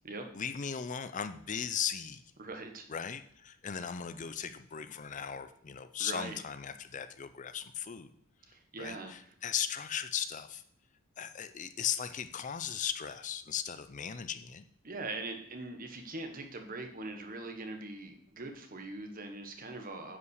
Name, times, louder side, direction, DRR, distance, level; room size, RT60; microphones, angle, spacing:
voice 1, 0.3-2.2 2.9-8.1 8.8-10.6 11.2-14.6, left 8 dB, 35° left, 11 dB, 0.5 m, -37 dB
voice 2, 2.4-2.9 6.0-6.4 8.5-9.1 14.8-20.2, right 2 dB, 40° right, 5 dB, 1.3 m, -42 dB
9.6 x 5.8 x 6.4 m, 0.65 s
head